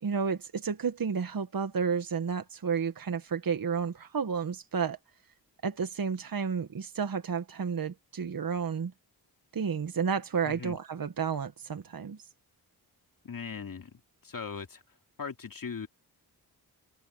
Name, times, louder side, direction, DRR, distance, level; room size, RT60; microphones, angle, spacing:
voice 1, 0.0-5.0 5.6-8.9 9.5-12.2, right 6 dB, 55° right, 1.5 m, -31 dB
voice 2, 10.5-10.8 13.2-14.8 15.2-15.9, left 5 dB, 55° left, 2.7 m, -39 dB
cardioid pair, 60°, 40 cm